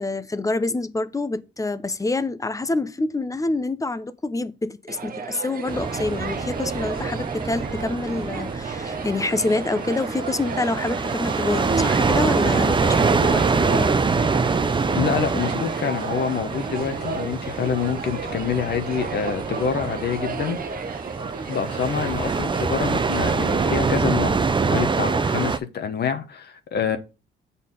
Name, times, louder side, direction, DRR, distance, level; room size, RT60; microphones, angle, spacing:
voice 1, 0.0-13.9, left 2 dB, 15° left, 0.7 m, -26 dB
sound 1, 4.9-24.0, right 5 dB, 45° right, 1.0 m, -33 dB
sound 2, 5.7-25.6, right 4 dB, 25° right, 0.6 m, -25 dB
voice 2, 14.9-20.6 21.5-27.0, left 7 dB, 55° left, 1.1 m, -26 dB
7.1 x 4.2 x 5.6 m
cardioid pair, 90°, 20 cm